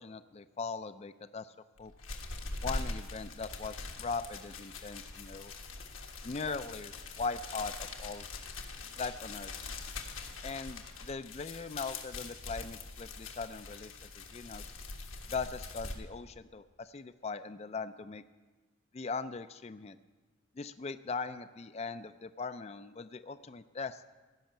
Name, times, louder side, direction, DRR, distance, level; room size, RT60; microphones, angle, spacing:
voice 1, 0.0-1.9 2.6-5.5 6.2-8.3 9.0-9.5 10.4-14.8 15.3-18.2 18.9-20.0 20.6-24.0, left 4 dB, 30° left, 12 dB, 0.4 m, -40 dB
sound 1, 1.8-16.0, left 3 dB, 75° left, 1.5 m, -43 dB
16.0 x 6.4 x 9.1 m, 1.3 s
head